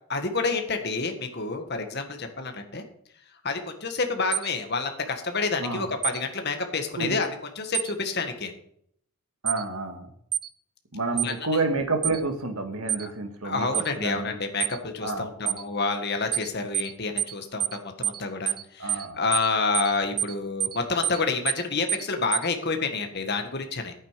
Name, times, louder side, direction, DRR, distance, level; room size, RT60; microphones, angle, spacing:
voice 1, 0.1-2.8 3.4-7.3 7.5-8.5 11.1-11.3 13.0-13.1 13.4-23.9, left 4 dB, 50° left, 6 dB, 1.7 m, -28 dB
sound 1, 4.3-4.5 6.0-6.2 7.7-7.9 9.5-9.6 10.3-10.5 11.2-11.3 12.0-12.2 12.9-13.1 13.7-13.9 14.6-14.8 15.5-15.6 16.3-16.5 16.7-16.9 17.2-17.3 17.6-17.8 18.0-18.2 18.5-18.6 18.9-19.1 19.3-19.5 19.7-19.9 20.2-20.3 20.6-20.8 21.0-21.2 21.5-21.6 21.9-22.1 22.3-22.5, right 10 dB, 20° right, 0.5 m, -27 dB
voice 2, 5.6-5.9 7.0-7.2 9.4-10.1 10.9-14.4 15.0-15.6 18.8-19.2, right 3 dB, 85° right, 5 dB, 2.0 m, -29 dB
10.5 x 9.1 x 5.1 m, 0.68 s
head